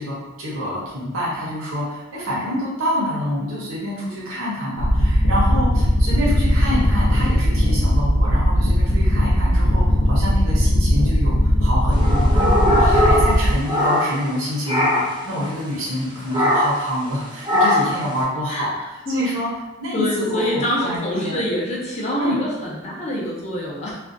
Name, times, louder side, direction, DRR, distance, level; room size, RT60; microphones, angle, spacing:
voice 1, 0.0-19.5 19.8-21.4 22.2-22.4, equal, 80° right, -6 dB, 0.7 m, -27 dB
sound 1, 4.8-13.5, equal, 80° left, 0.5 m, -18 dB
sound 2, 11.9-14.4 14.7-15.2 16.3-16.9 17.4-18.0, left 1 dB, 25° right, 0.5 m, -20 dB
voice 2, 19.1-19.4 19.9-24.0, equal, 35° left, -4 dB, 0.6 m, -25 dB
2.4 x 2.2 x 2.5 m, 1.1 s
head